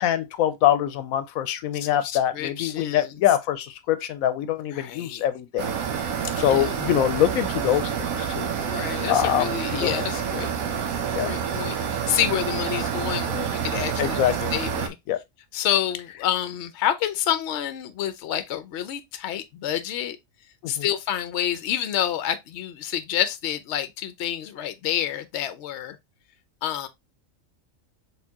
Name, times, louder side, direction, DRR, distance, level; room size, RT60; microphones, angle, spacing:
voice 1, 0.0-5.8 6.4-8.5 9.1-9.9 11.1-11.3 14.0-14.5 15.1-15.2 20.8-20.9, left 11 dB, 90° left, 1.0 m, -24 dB
voice 2, 1.7-3.2 4.7-5.2 6.5-6.8 8.6-10.5 11.1-15.0 15.5-20.2 20.7-26.0 26.6-26.9, left 11 dB, 65° left, 0.9 m, -28 dB
sound 1, 5.6-14.9, right 7 dB, 90° right, 1.2 m, -28 dB
4.4 x 3.6 x 2.8 m
omnidirectional pair, 1.4 m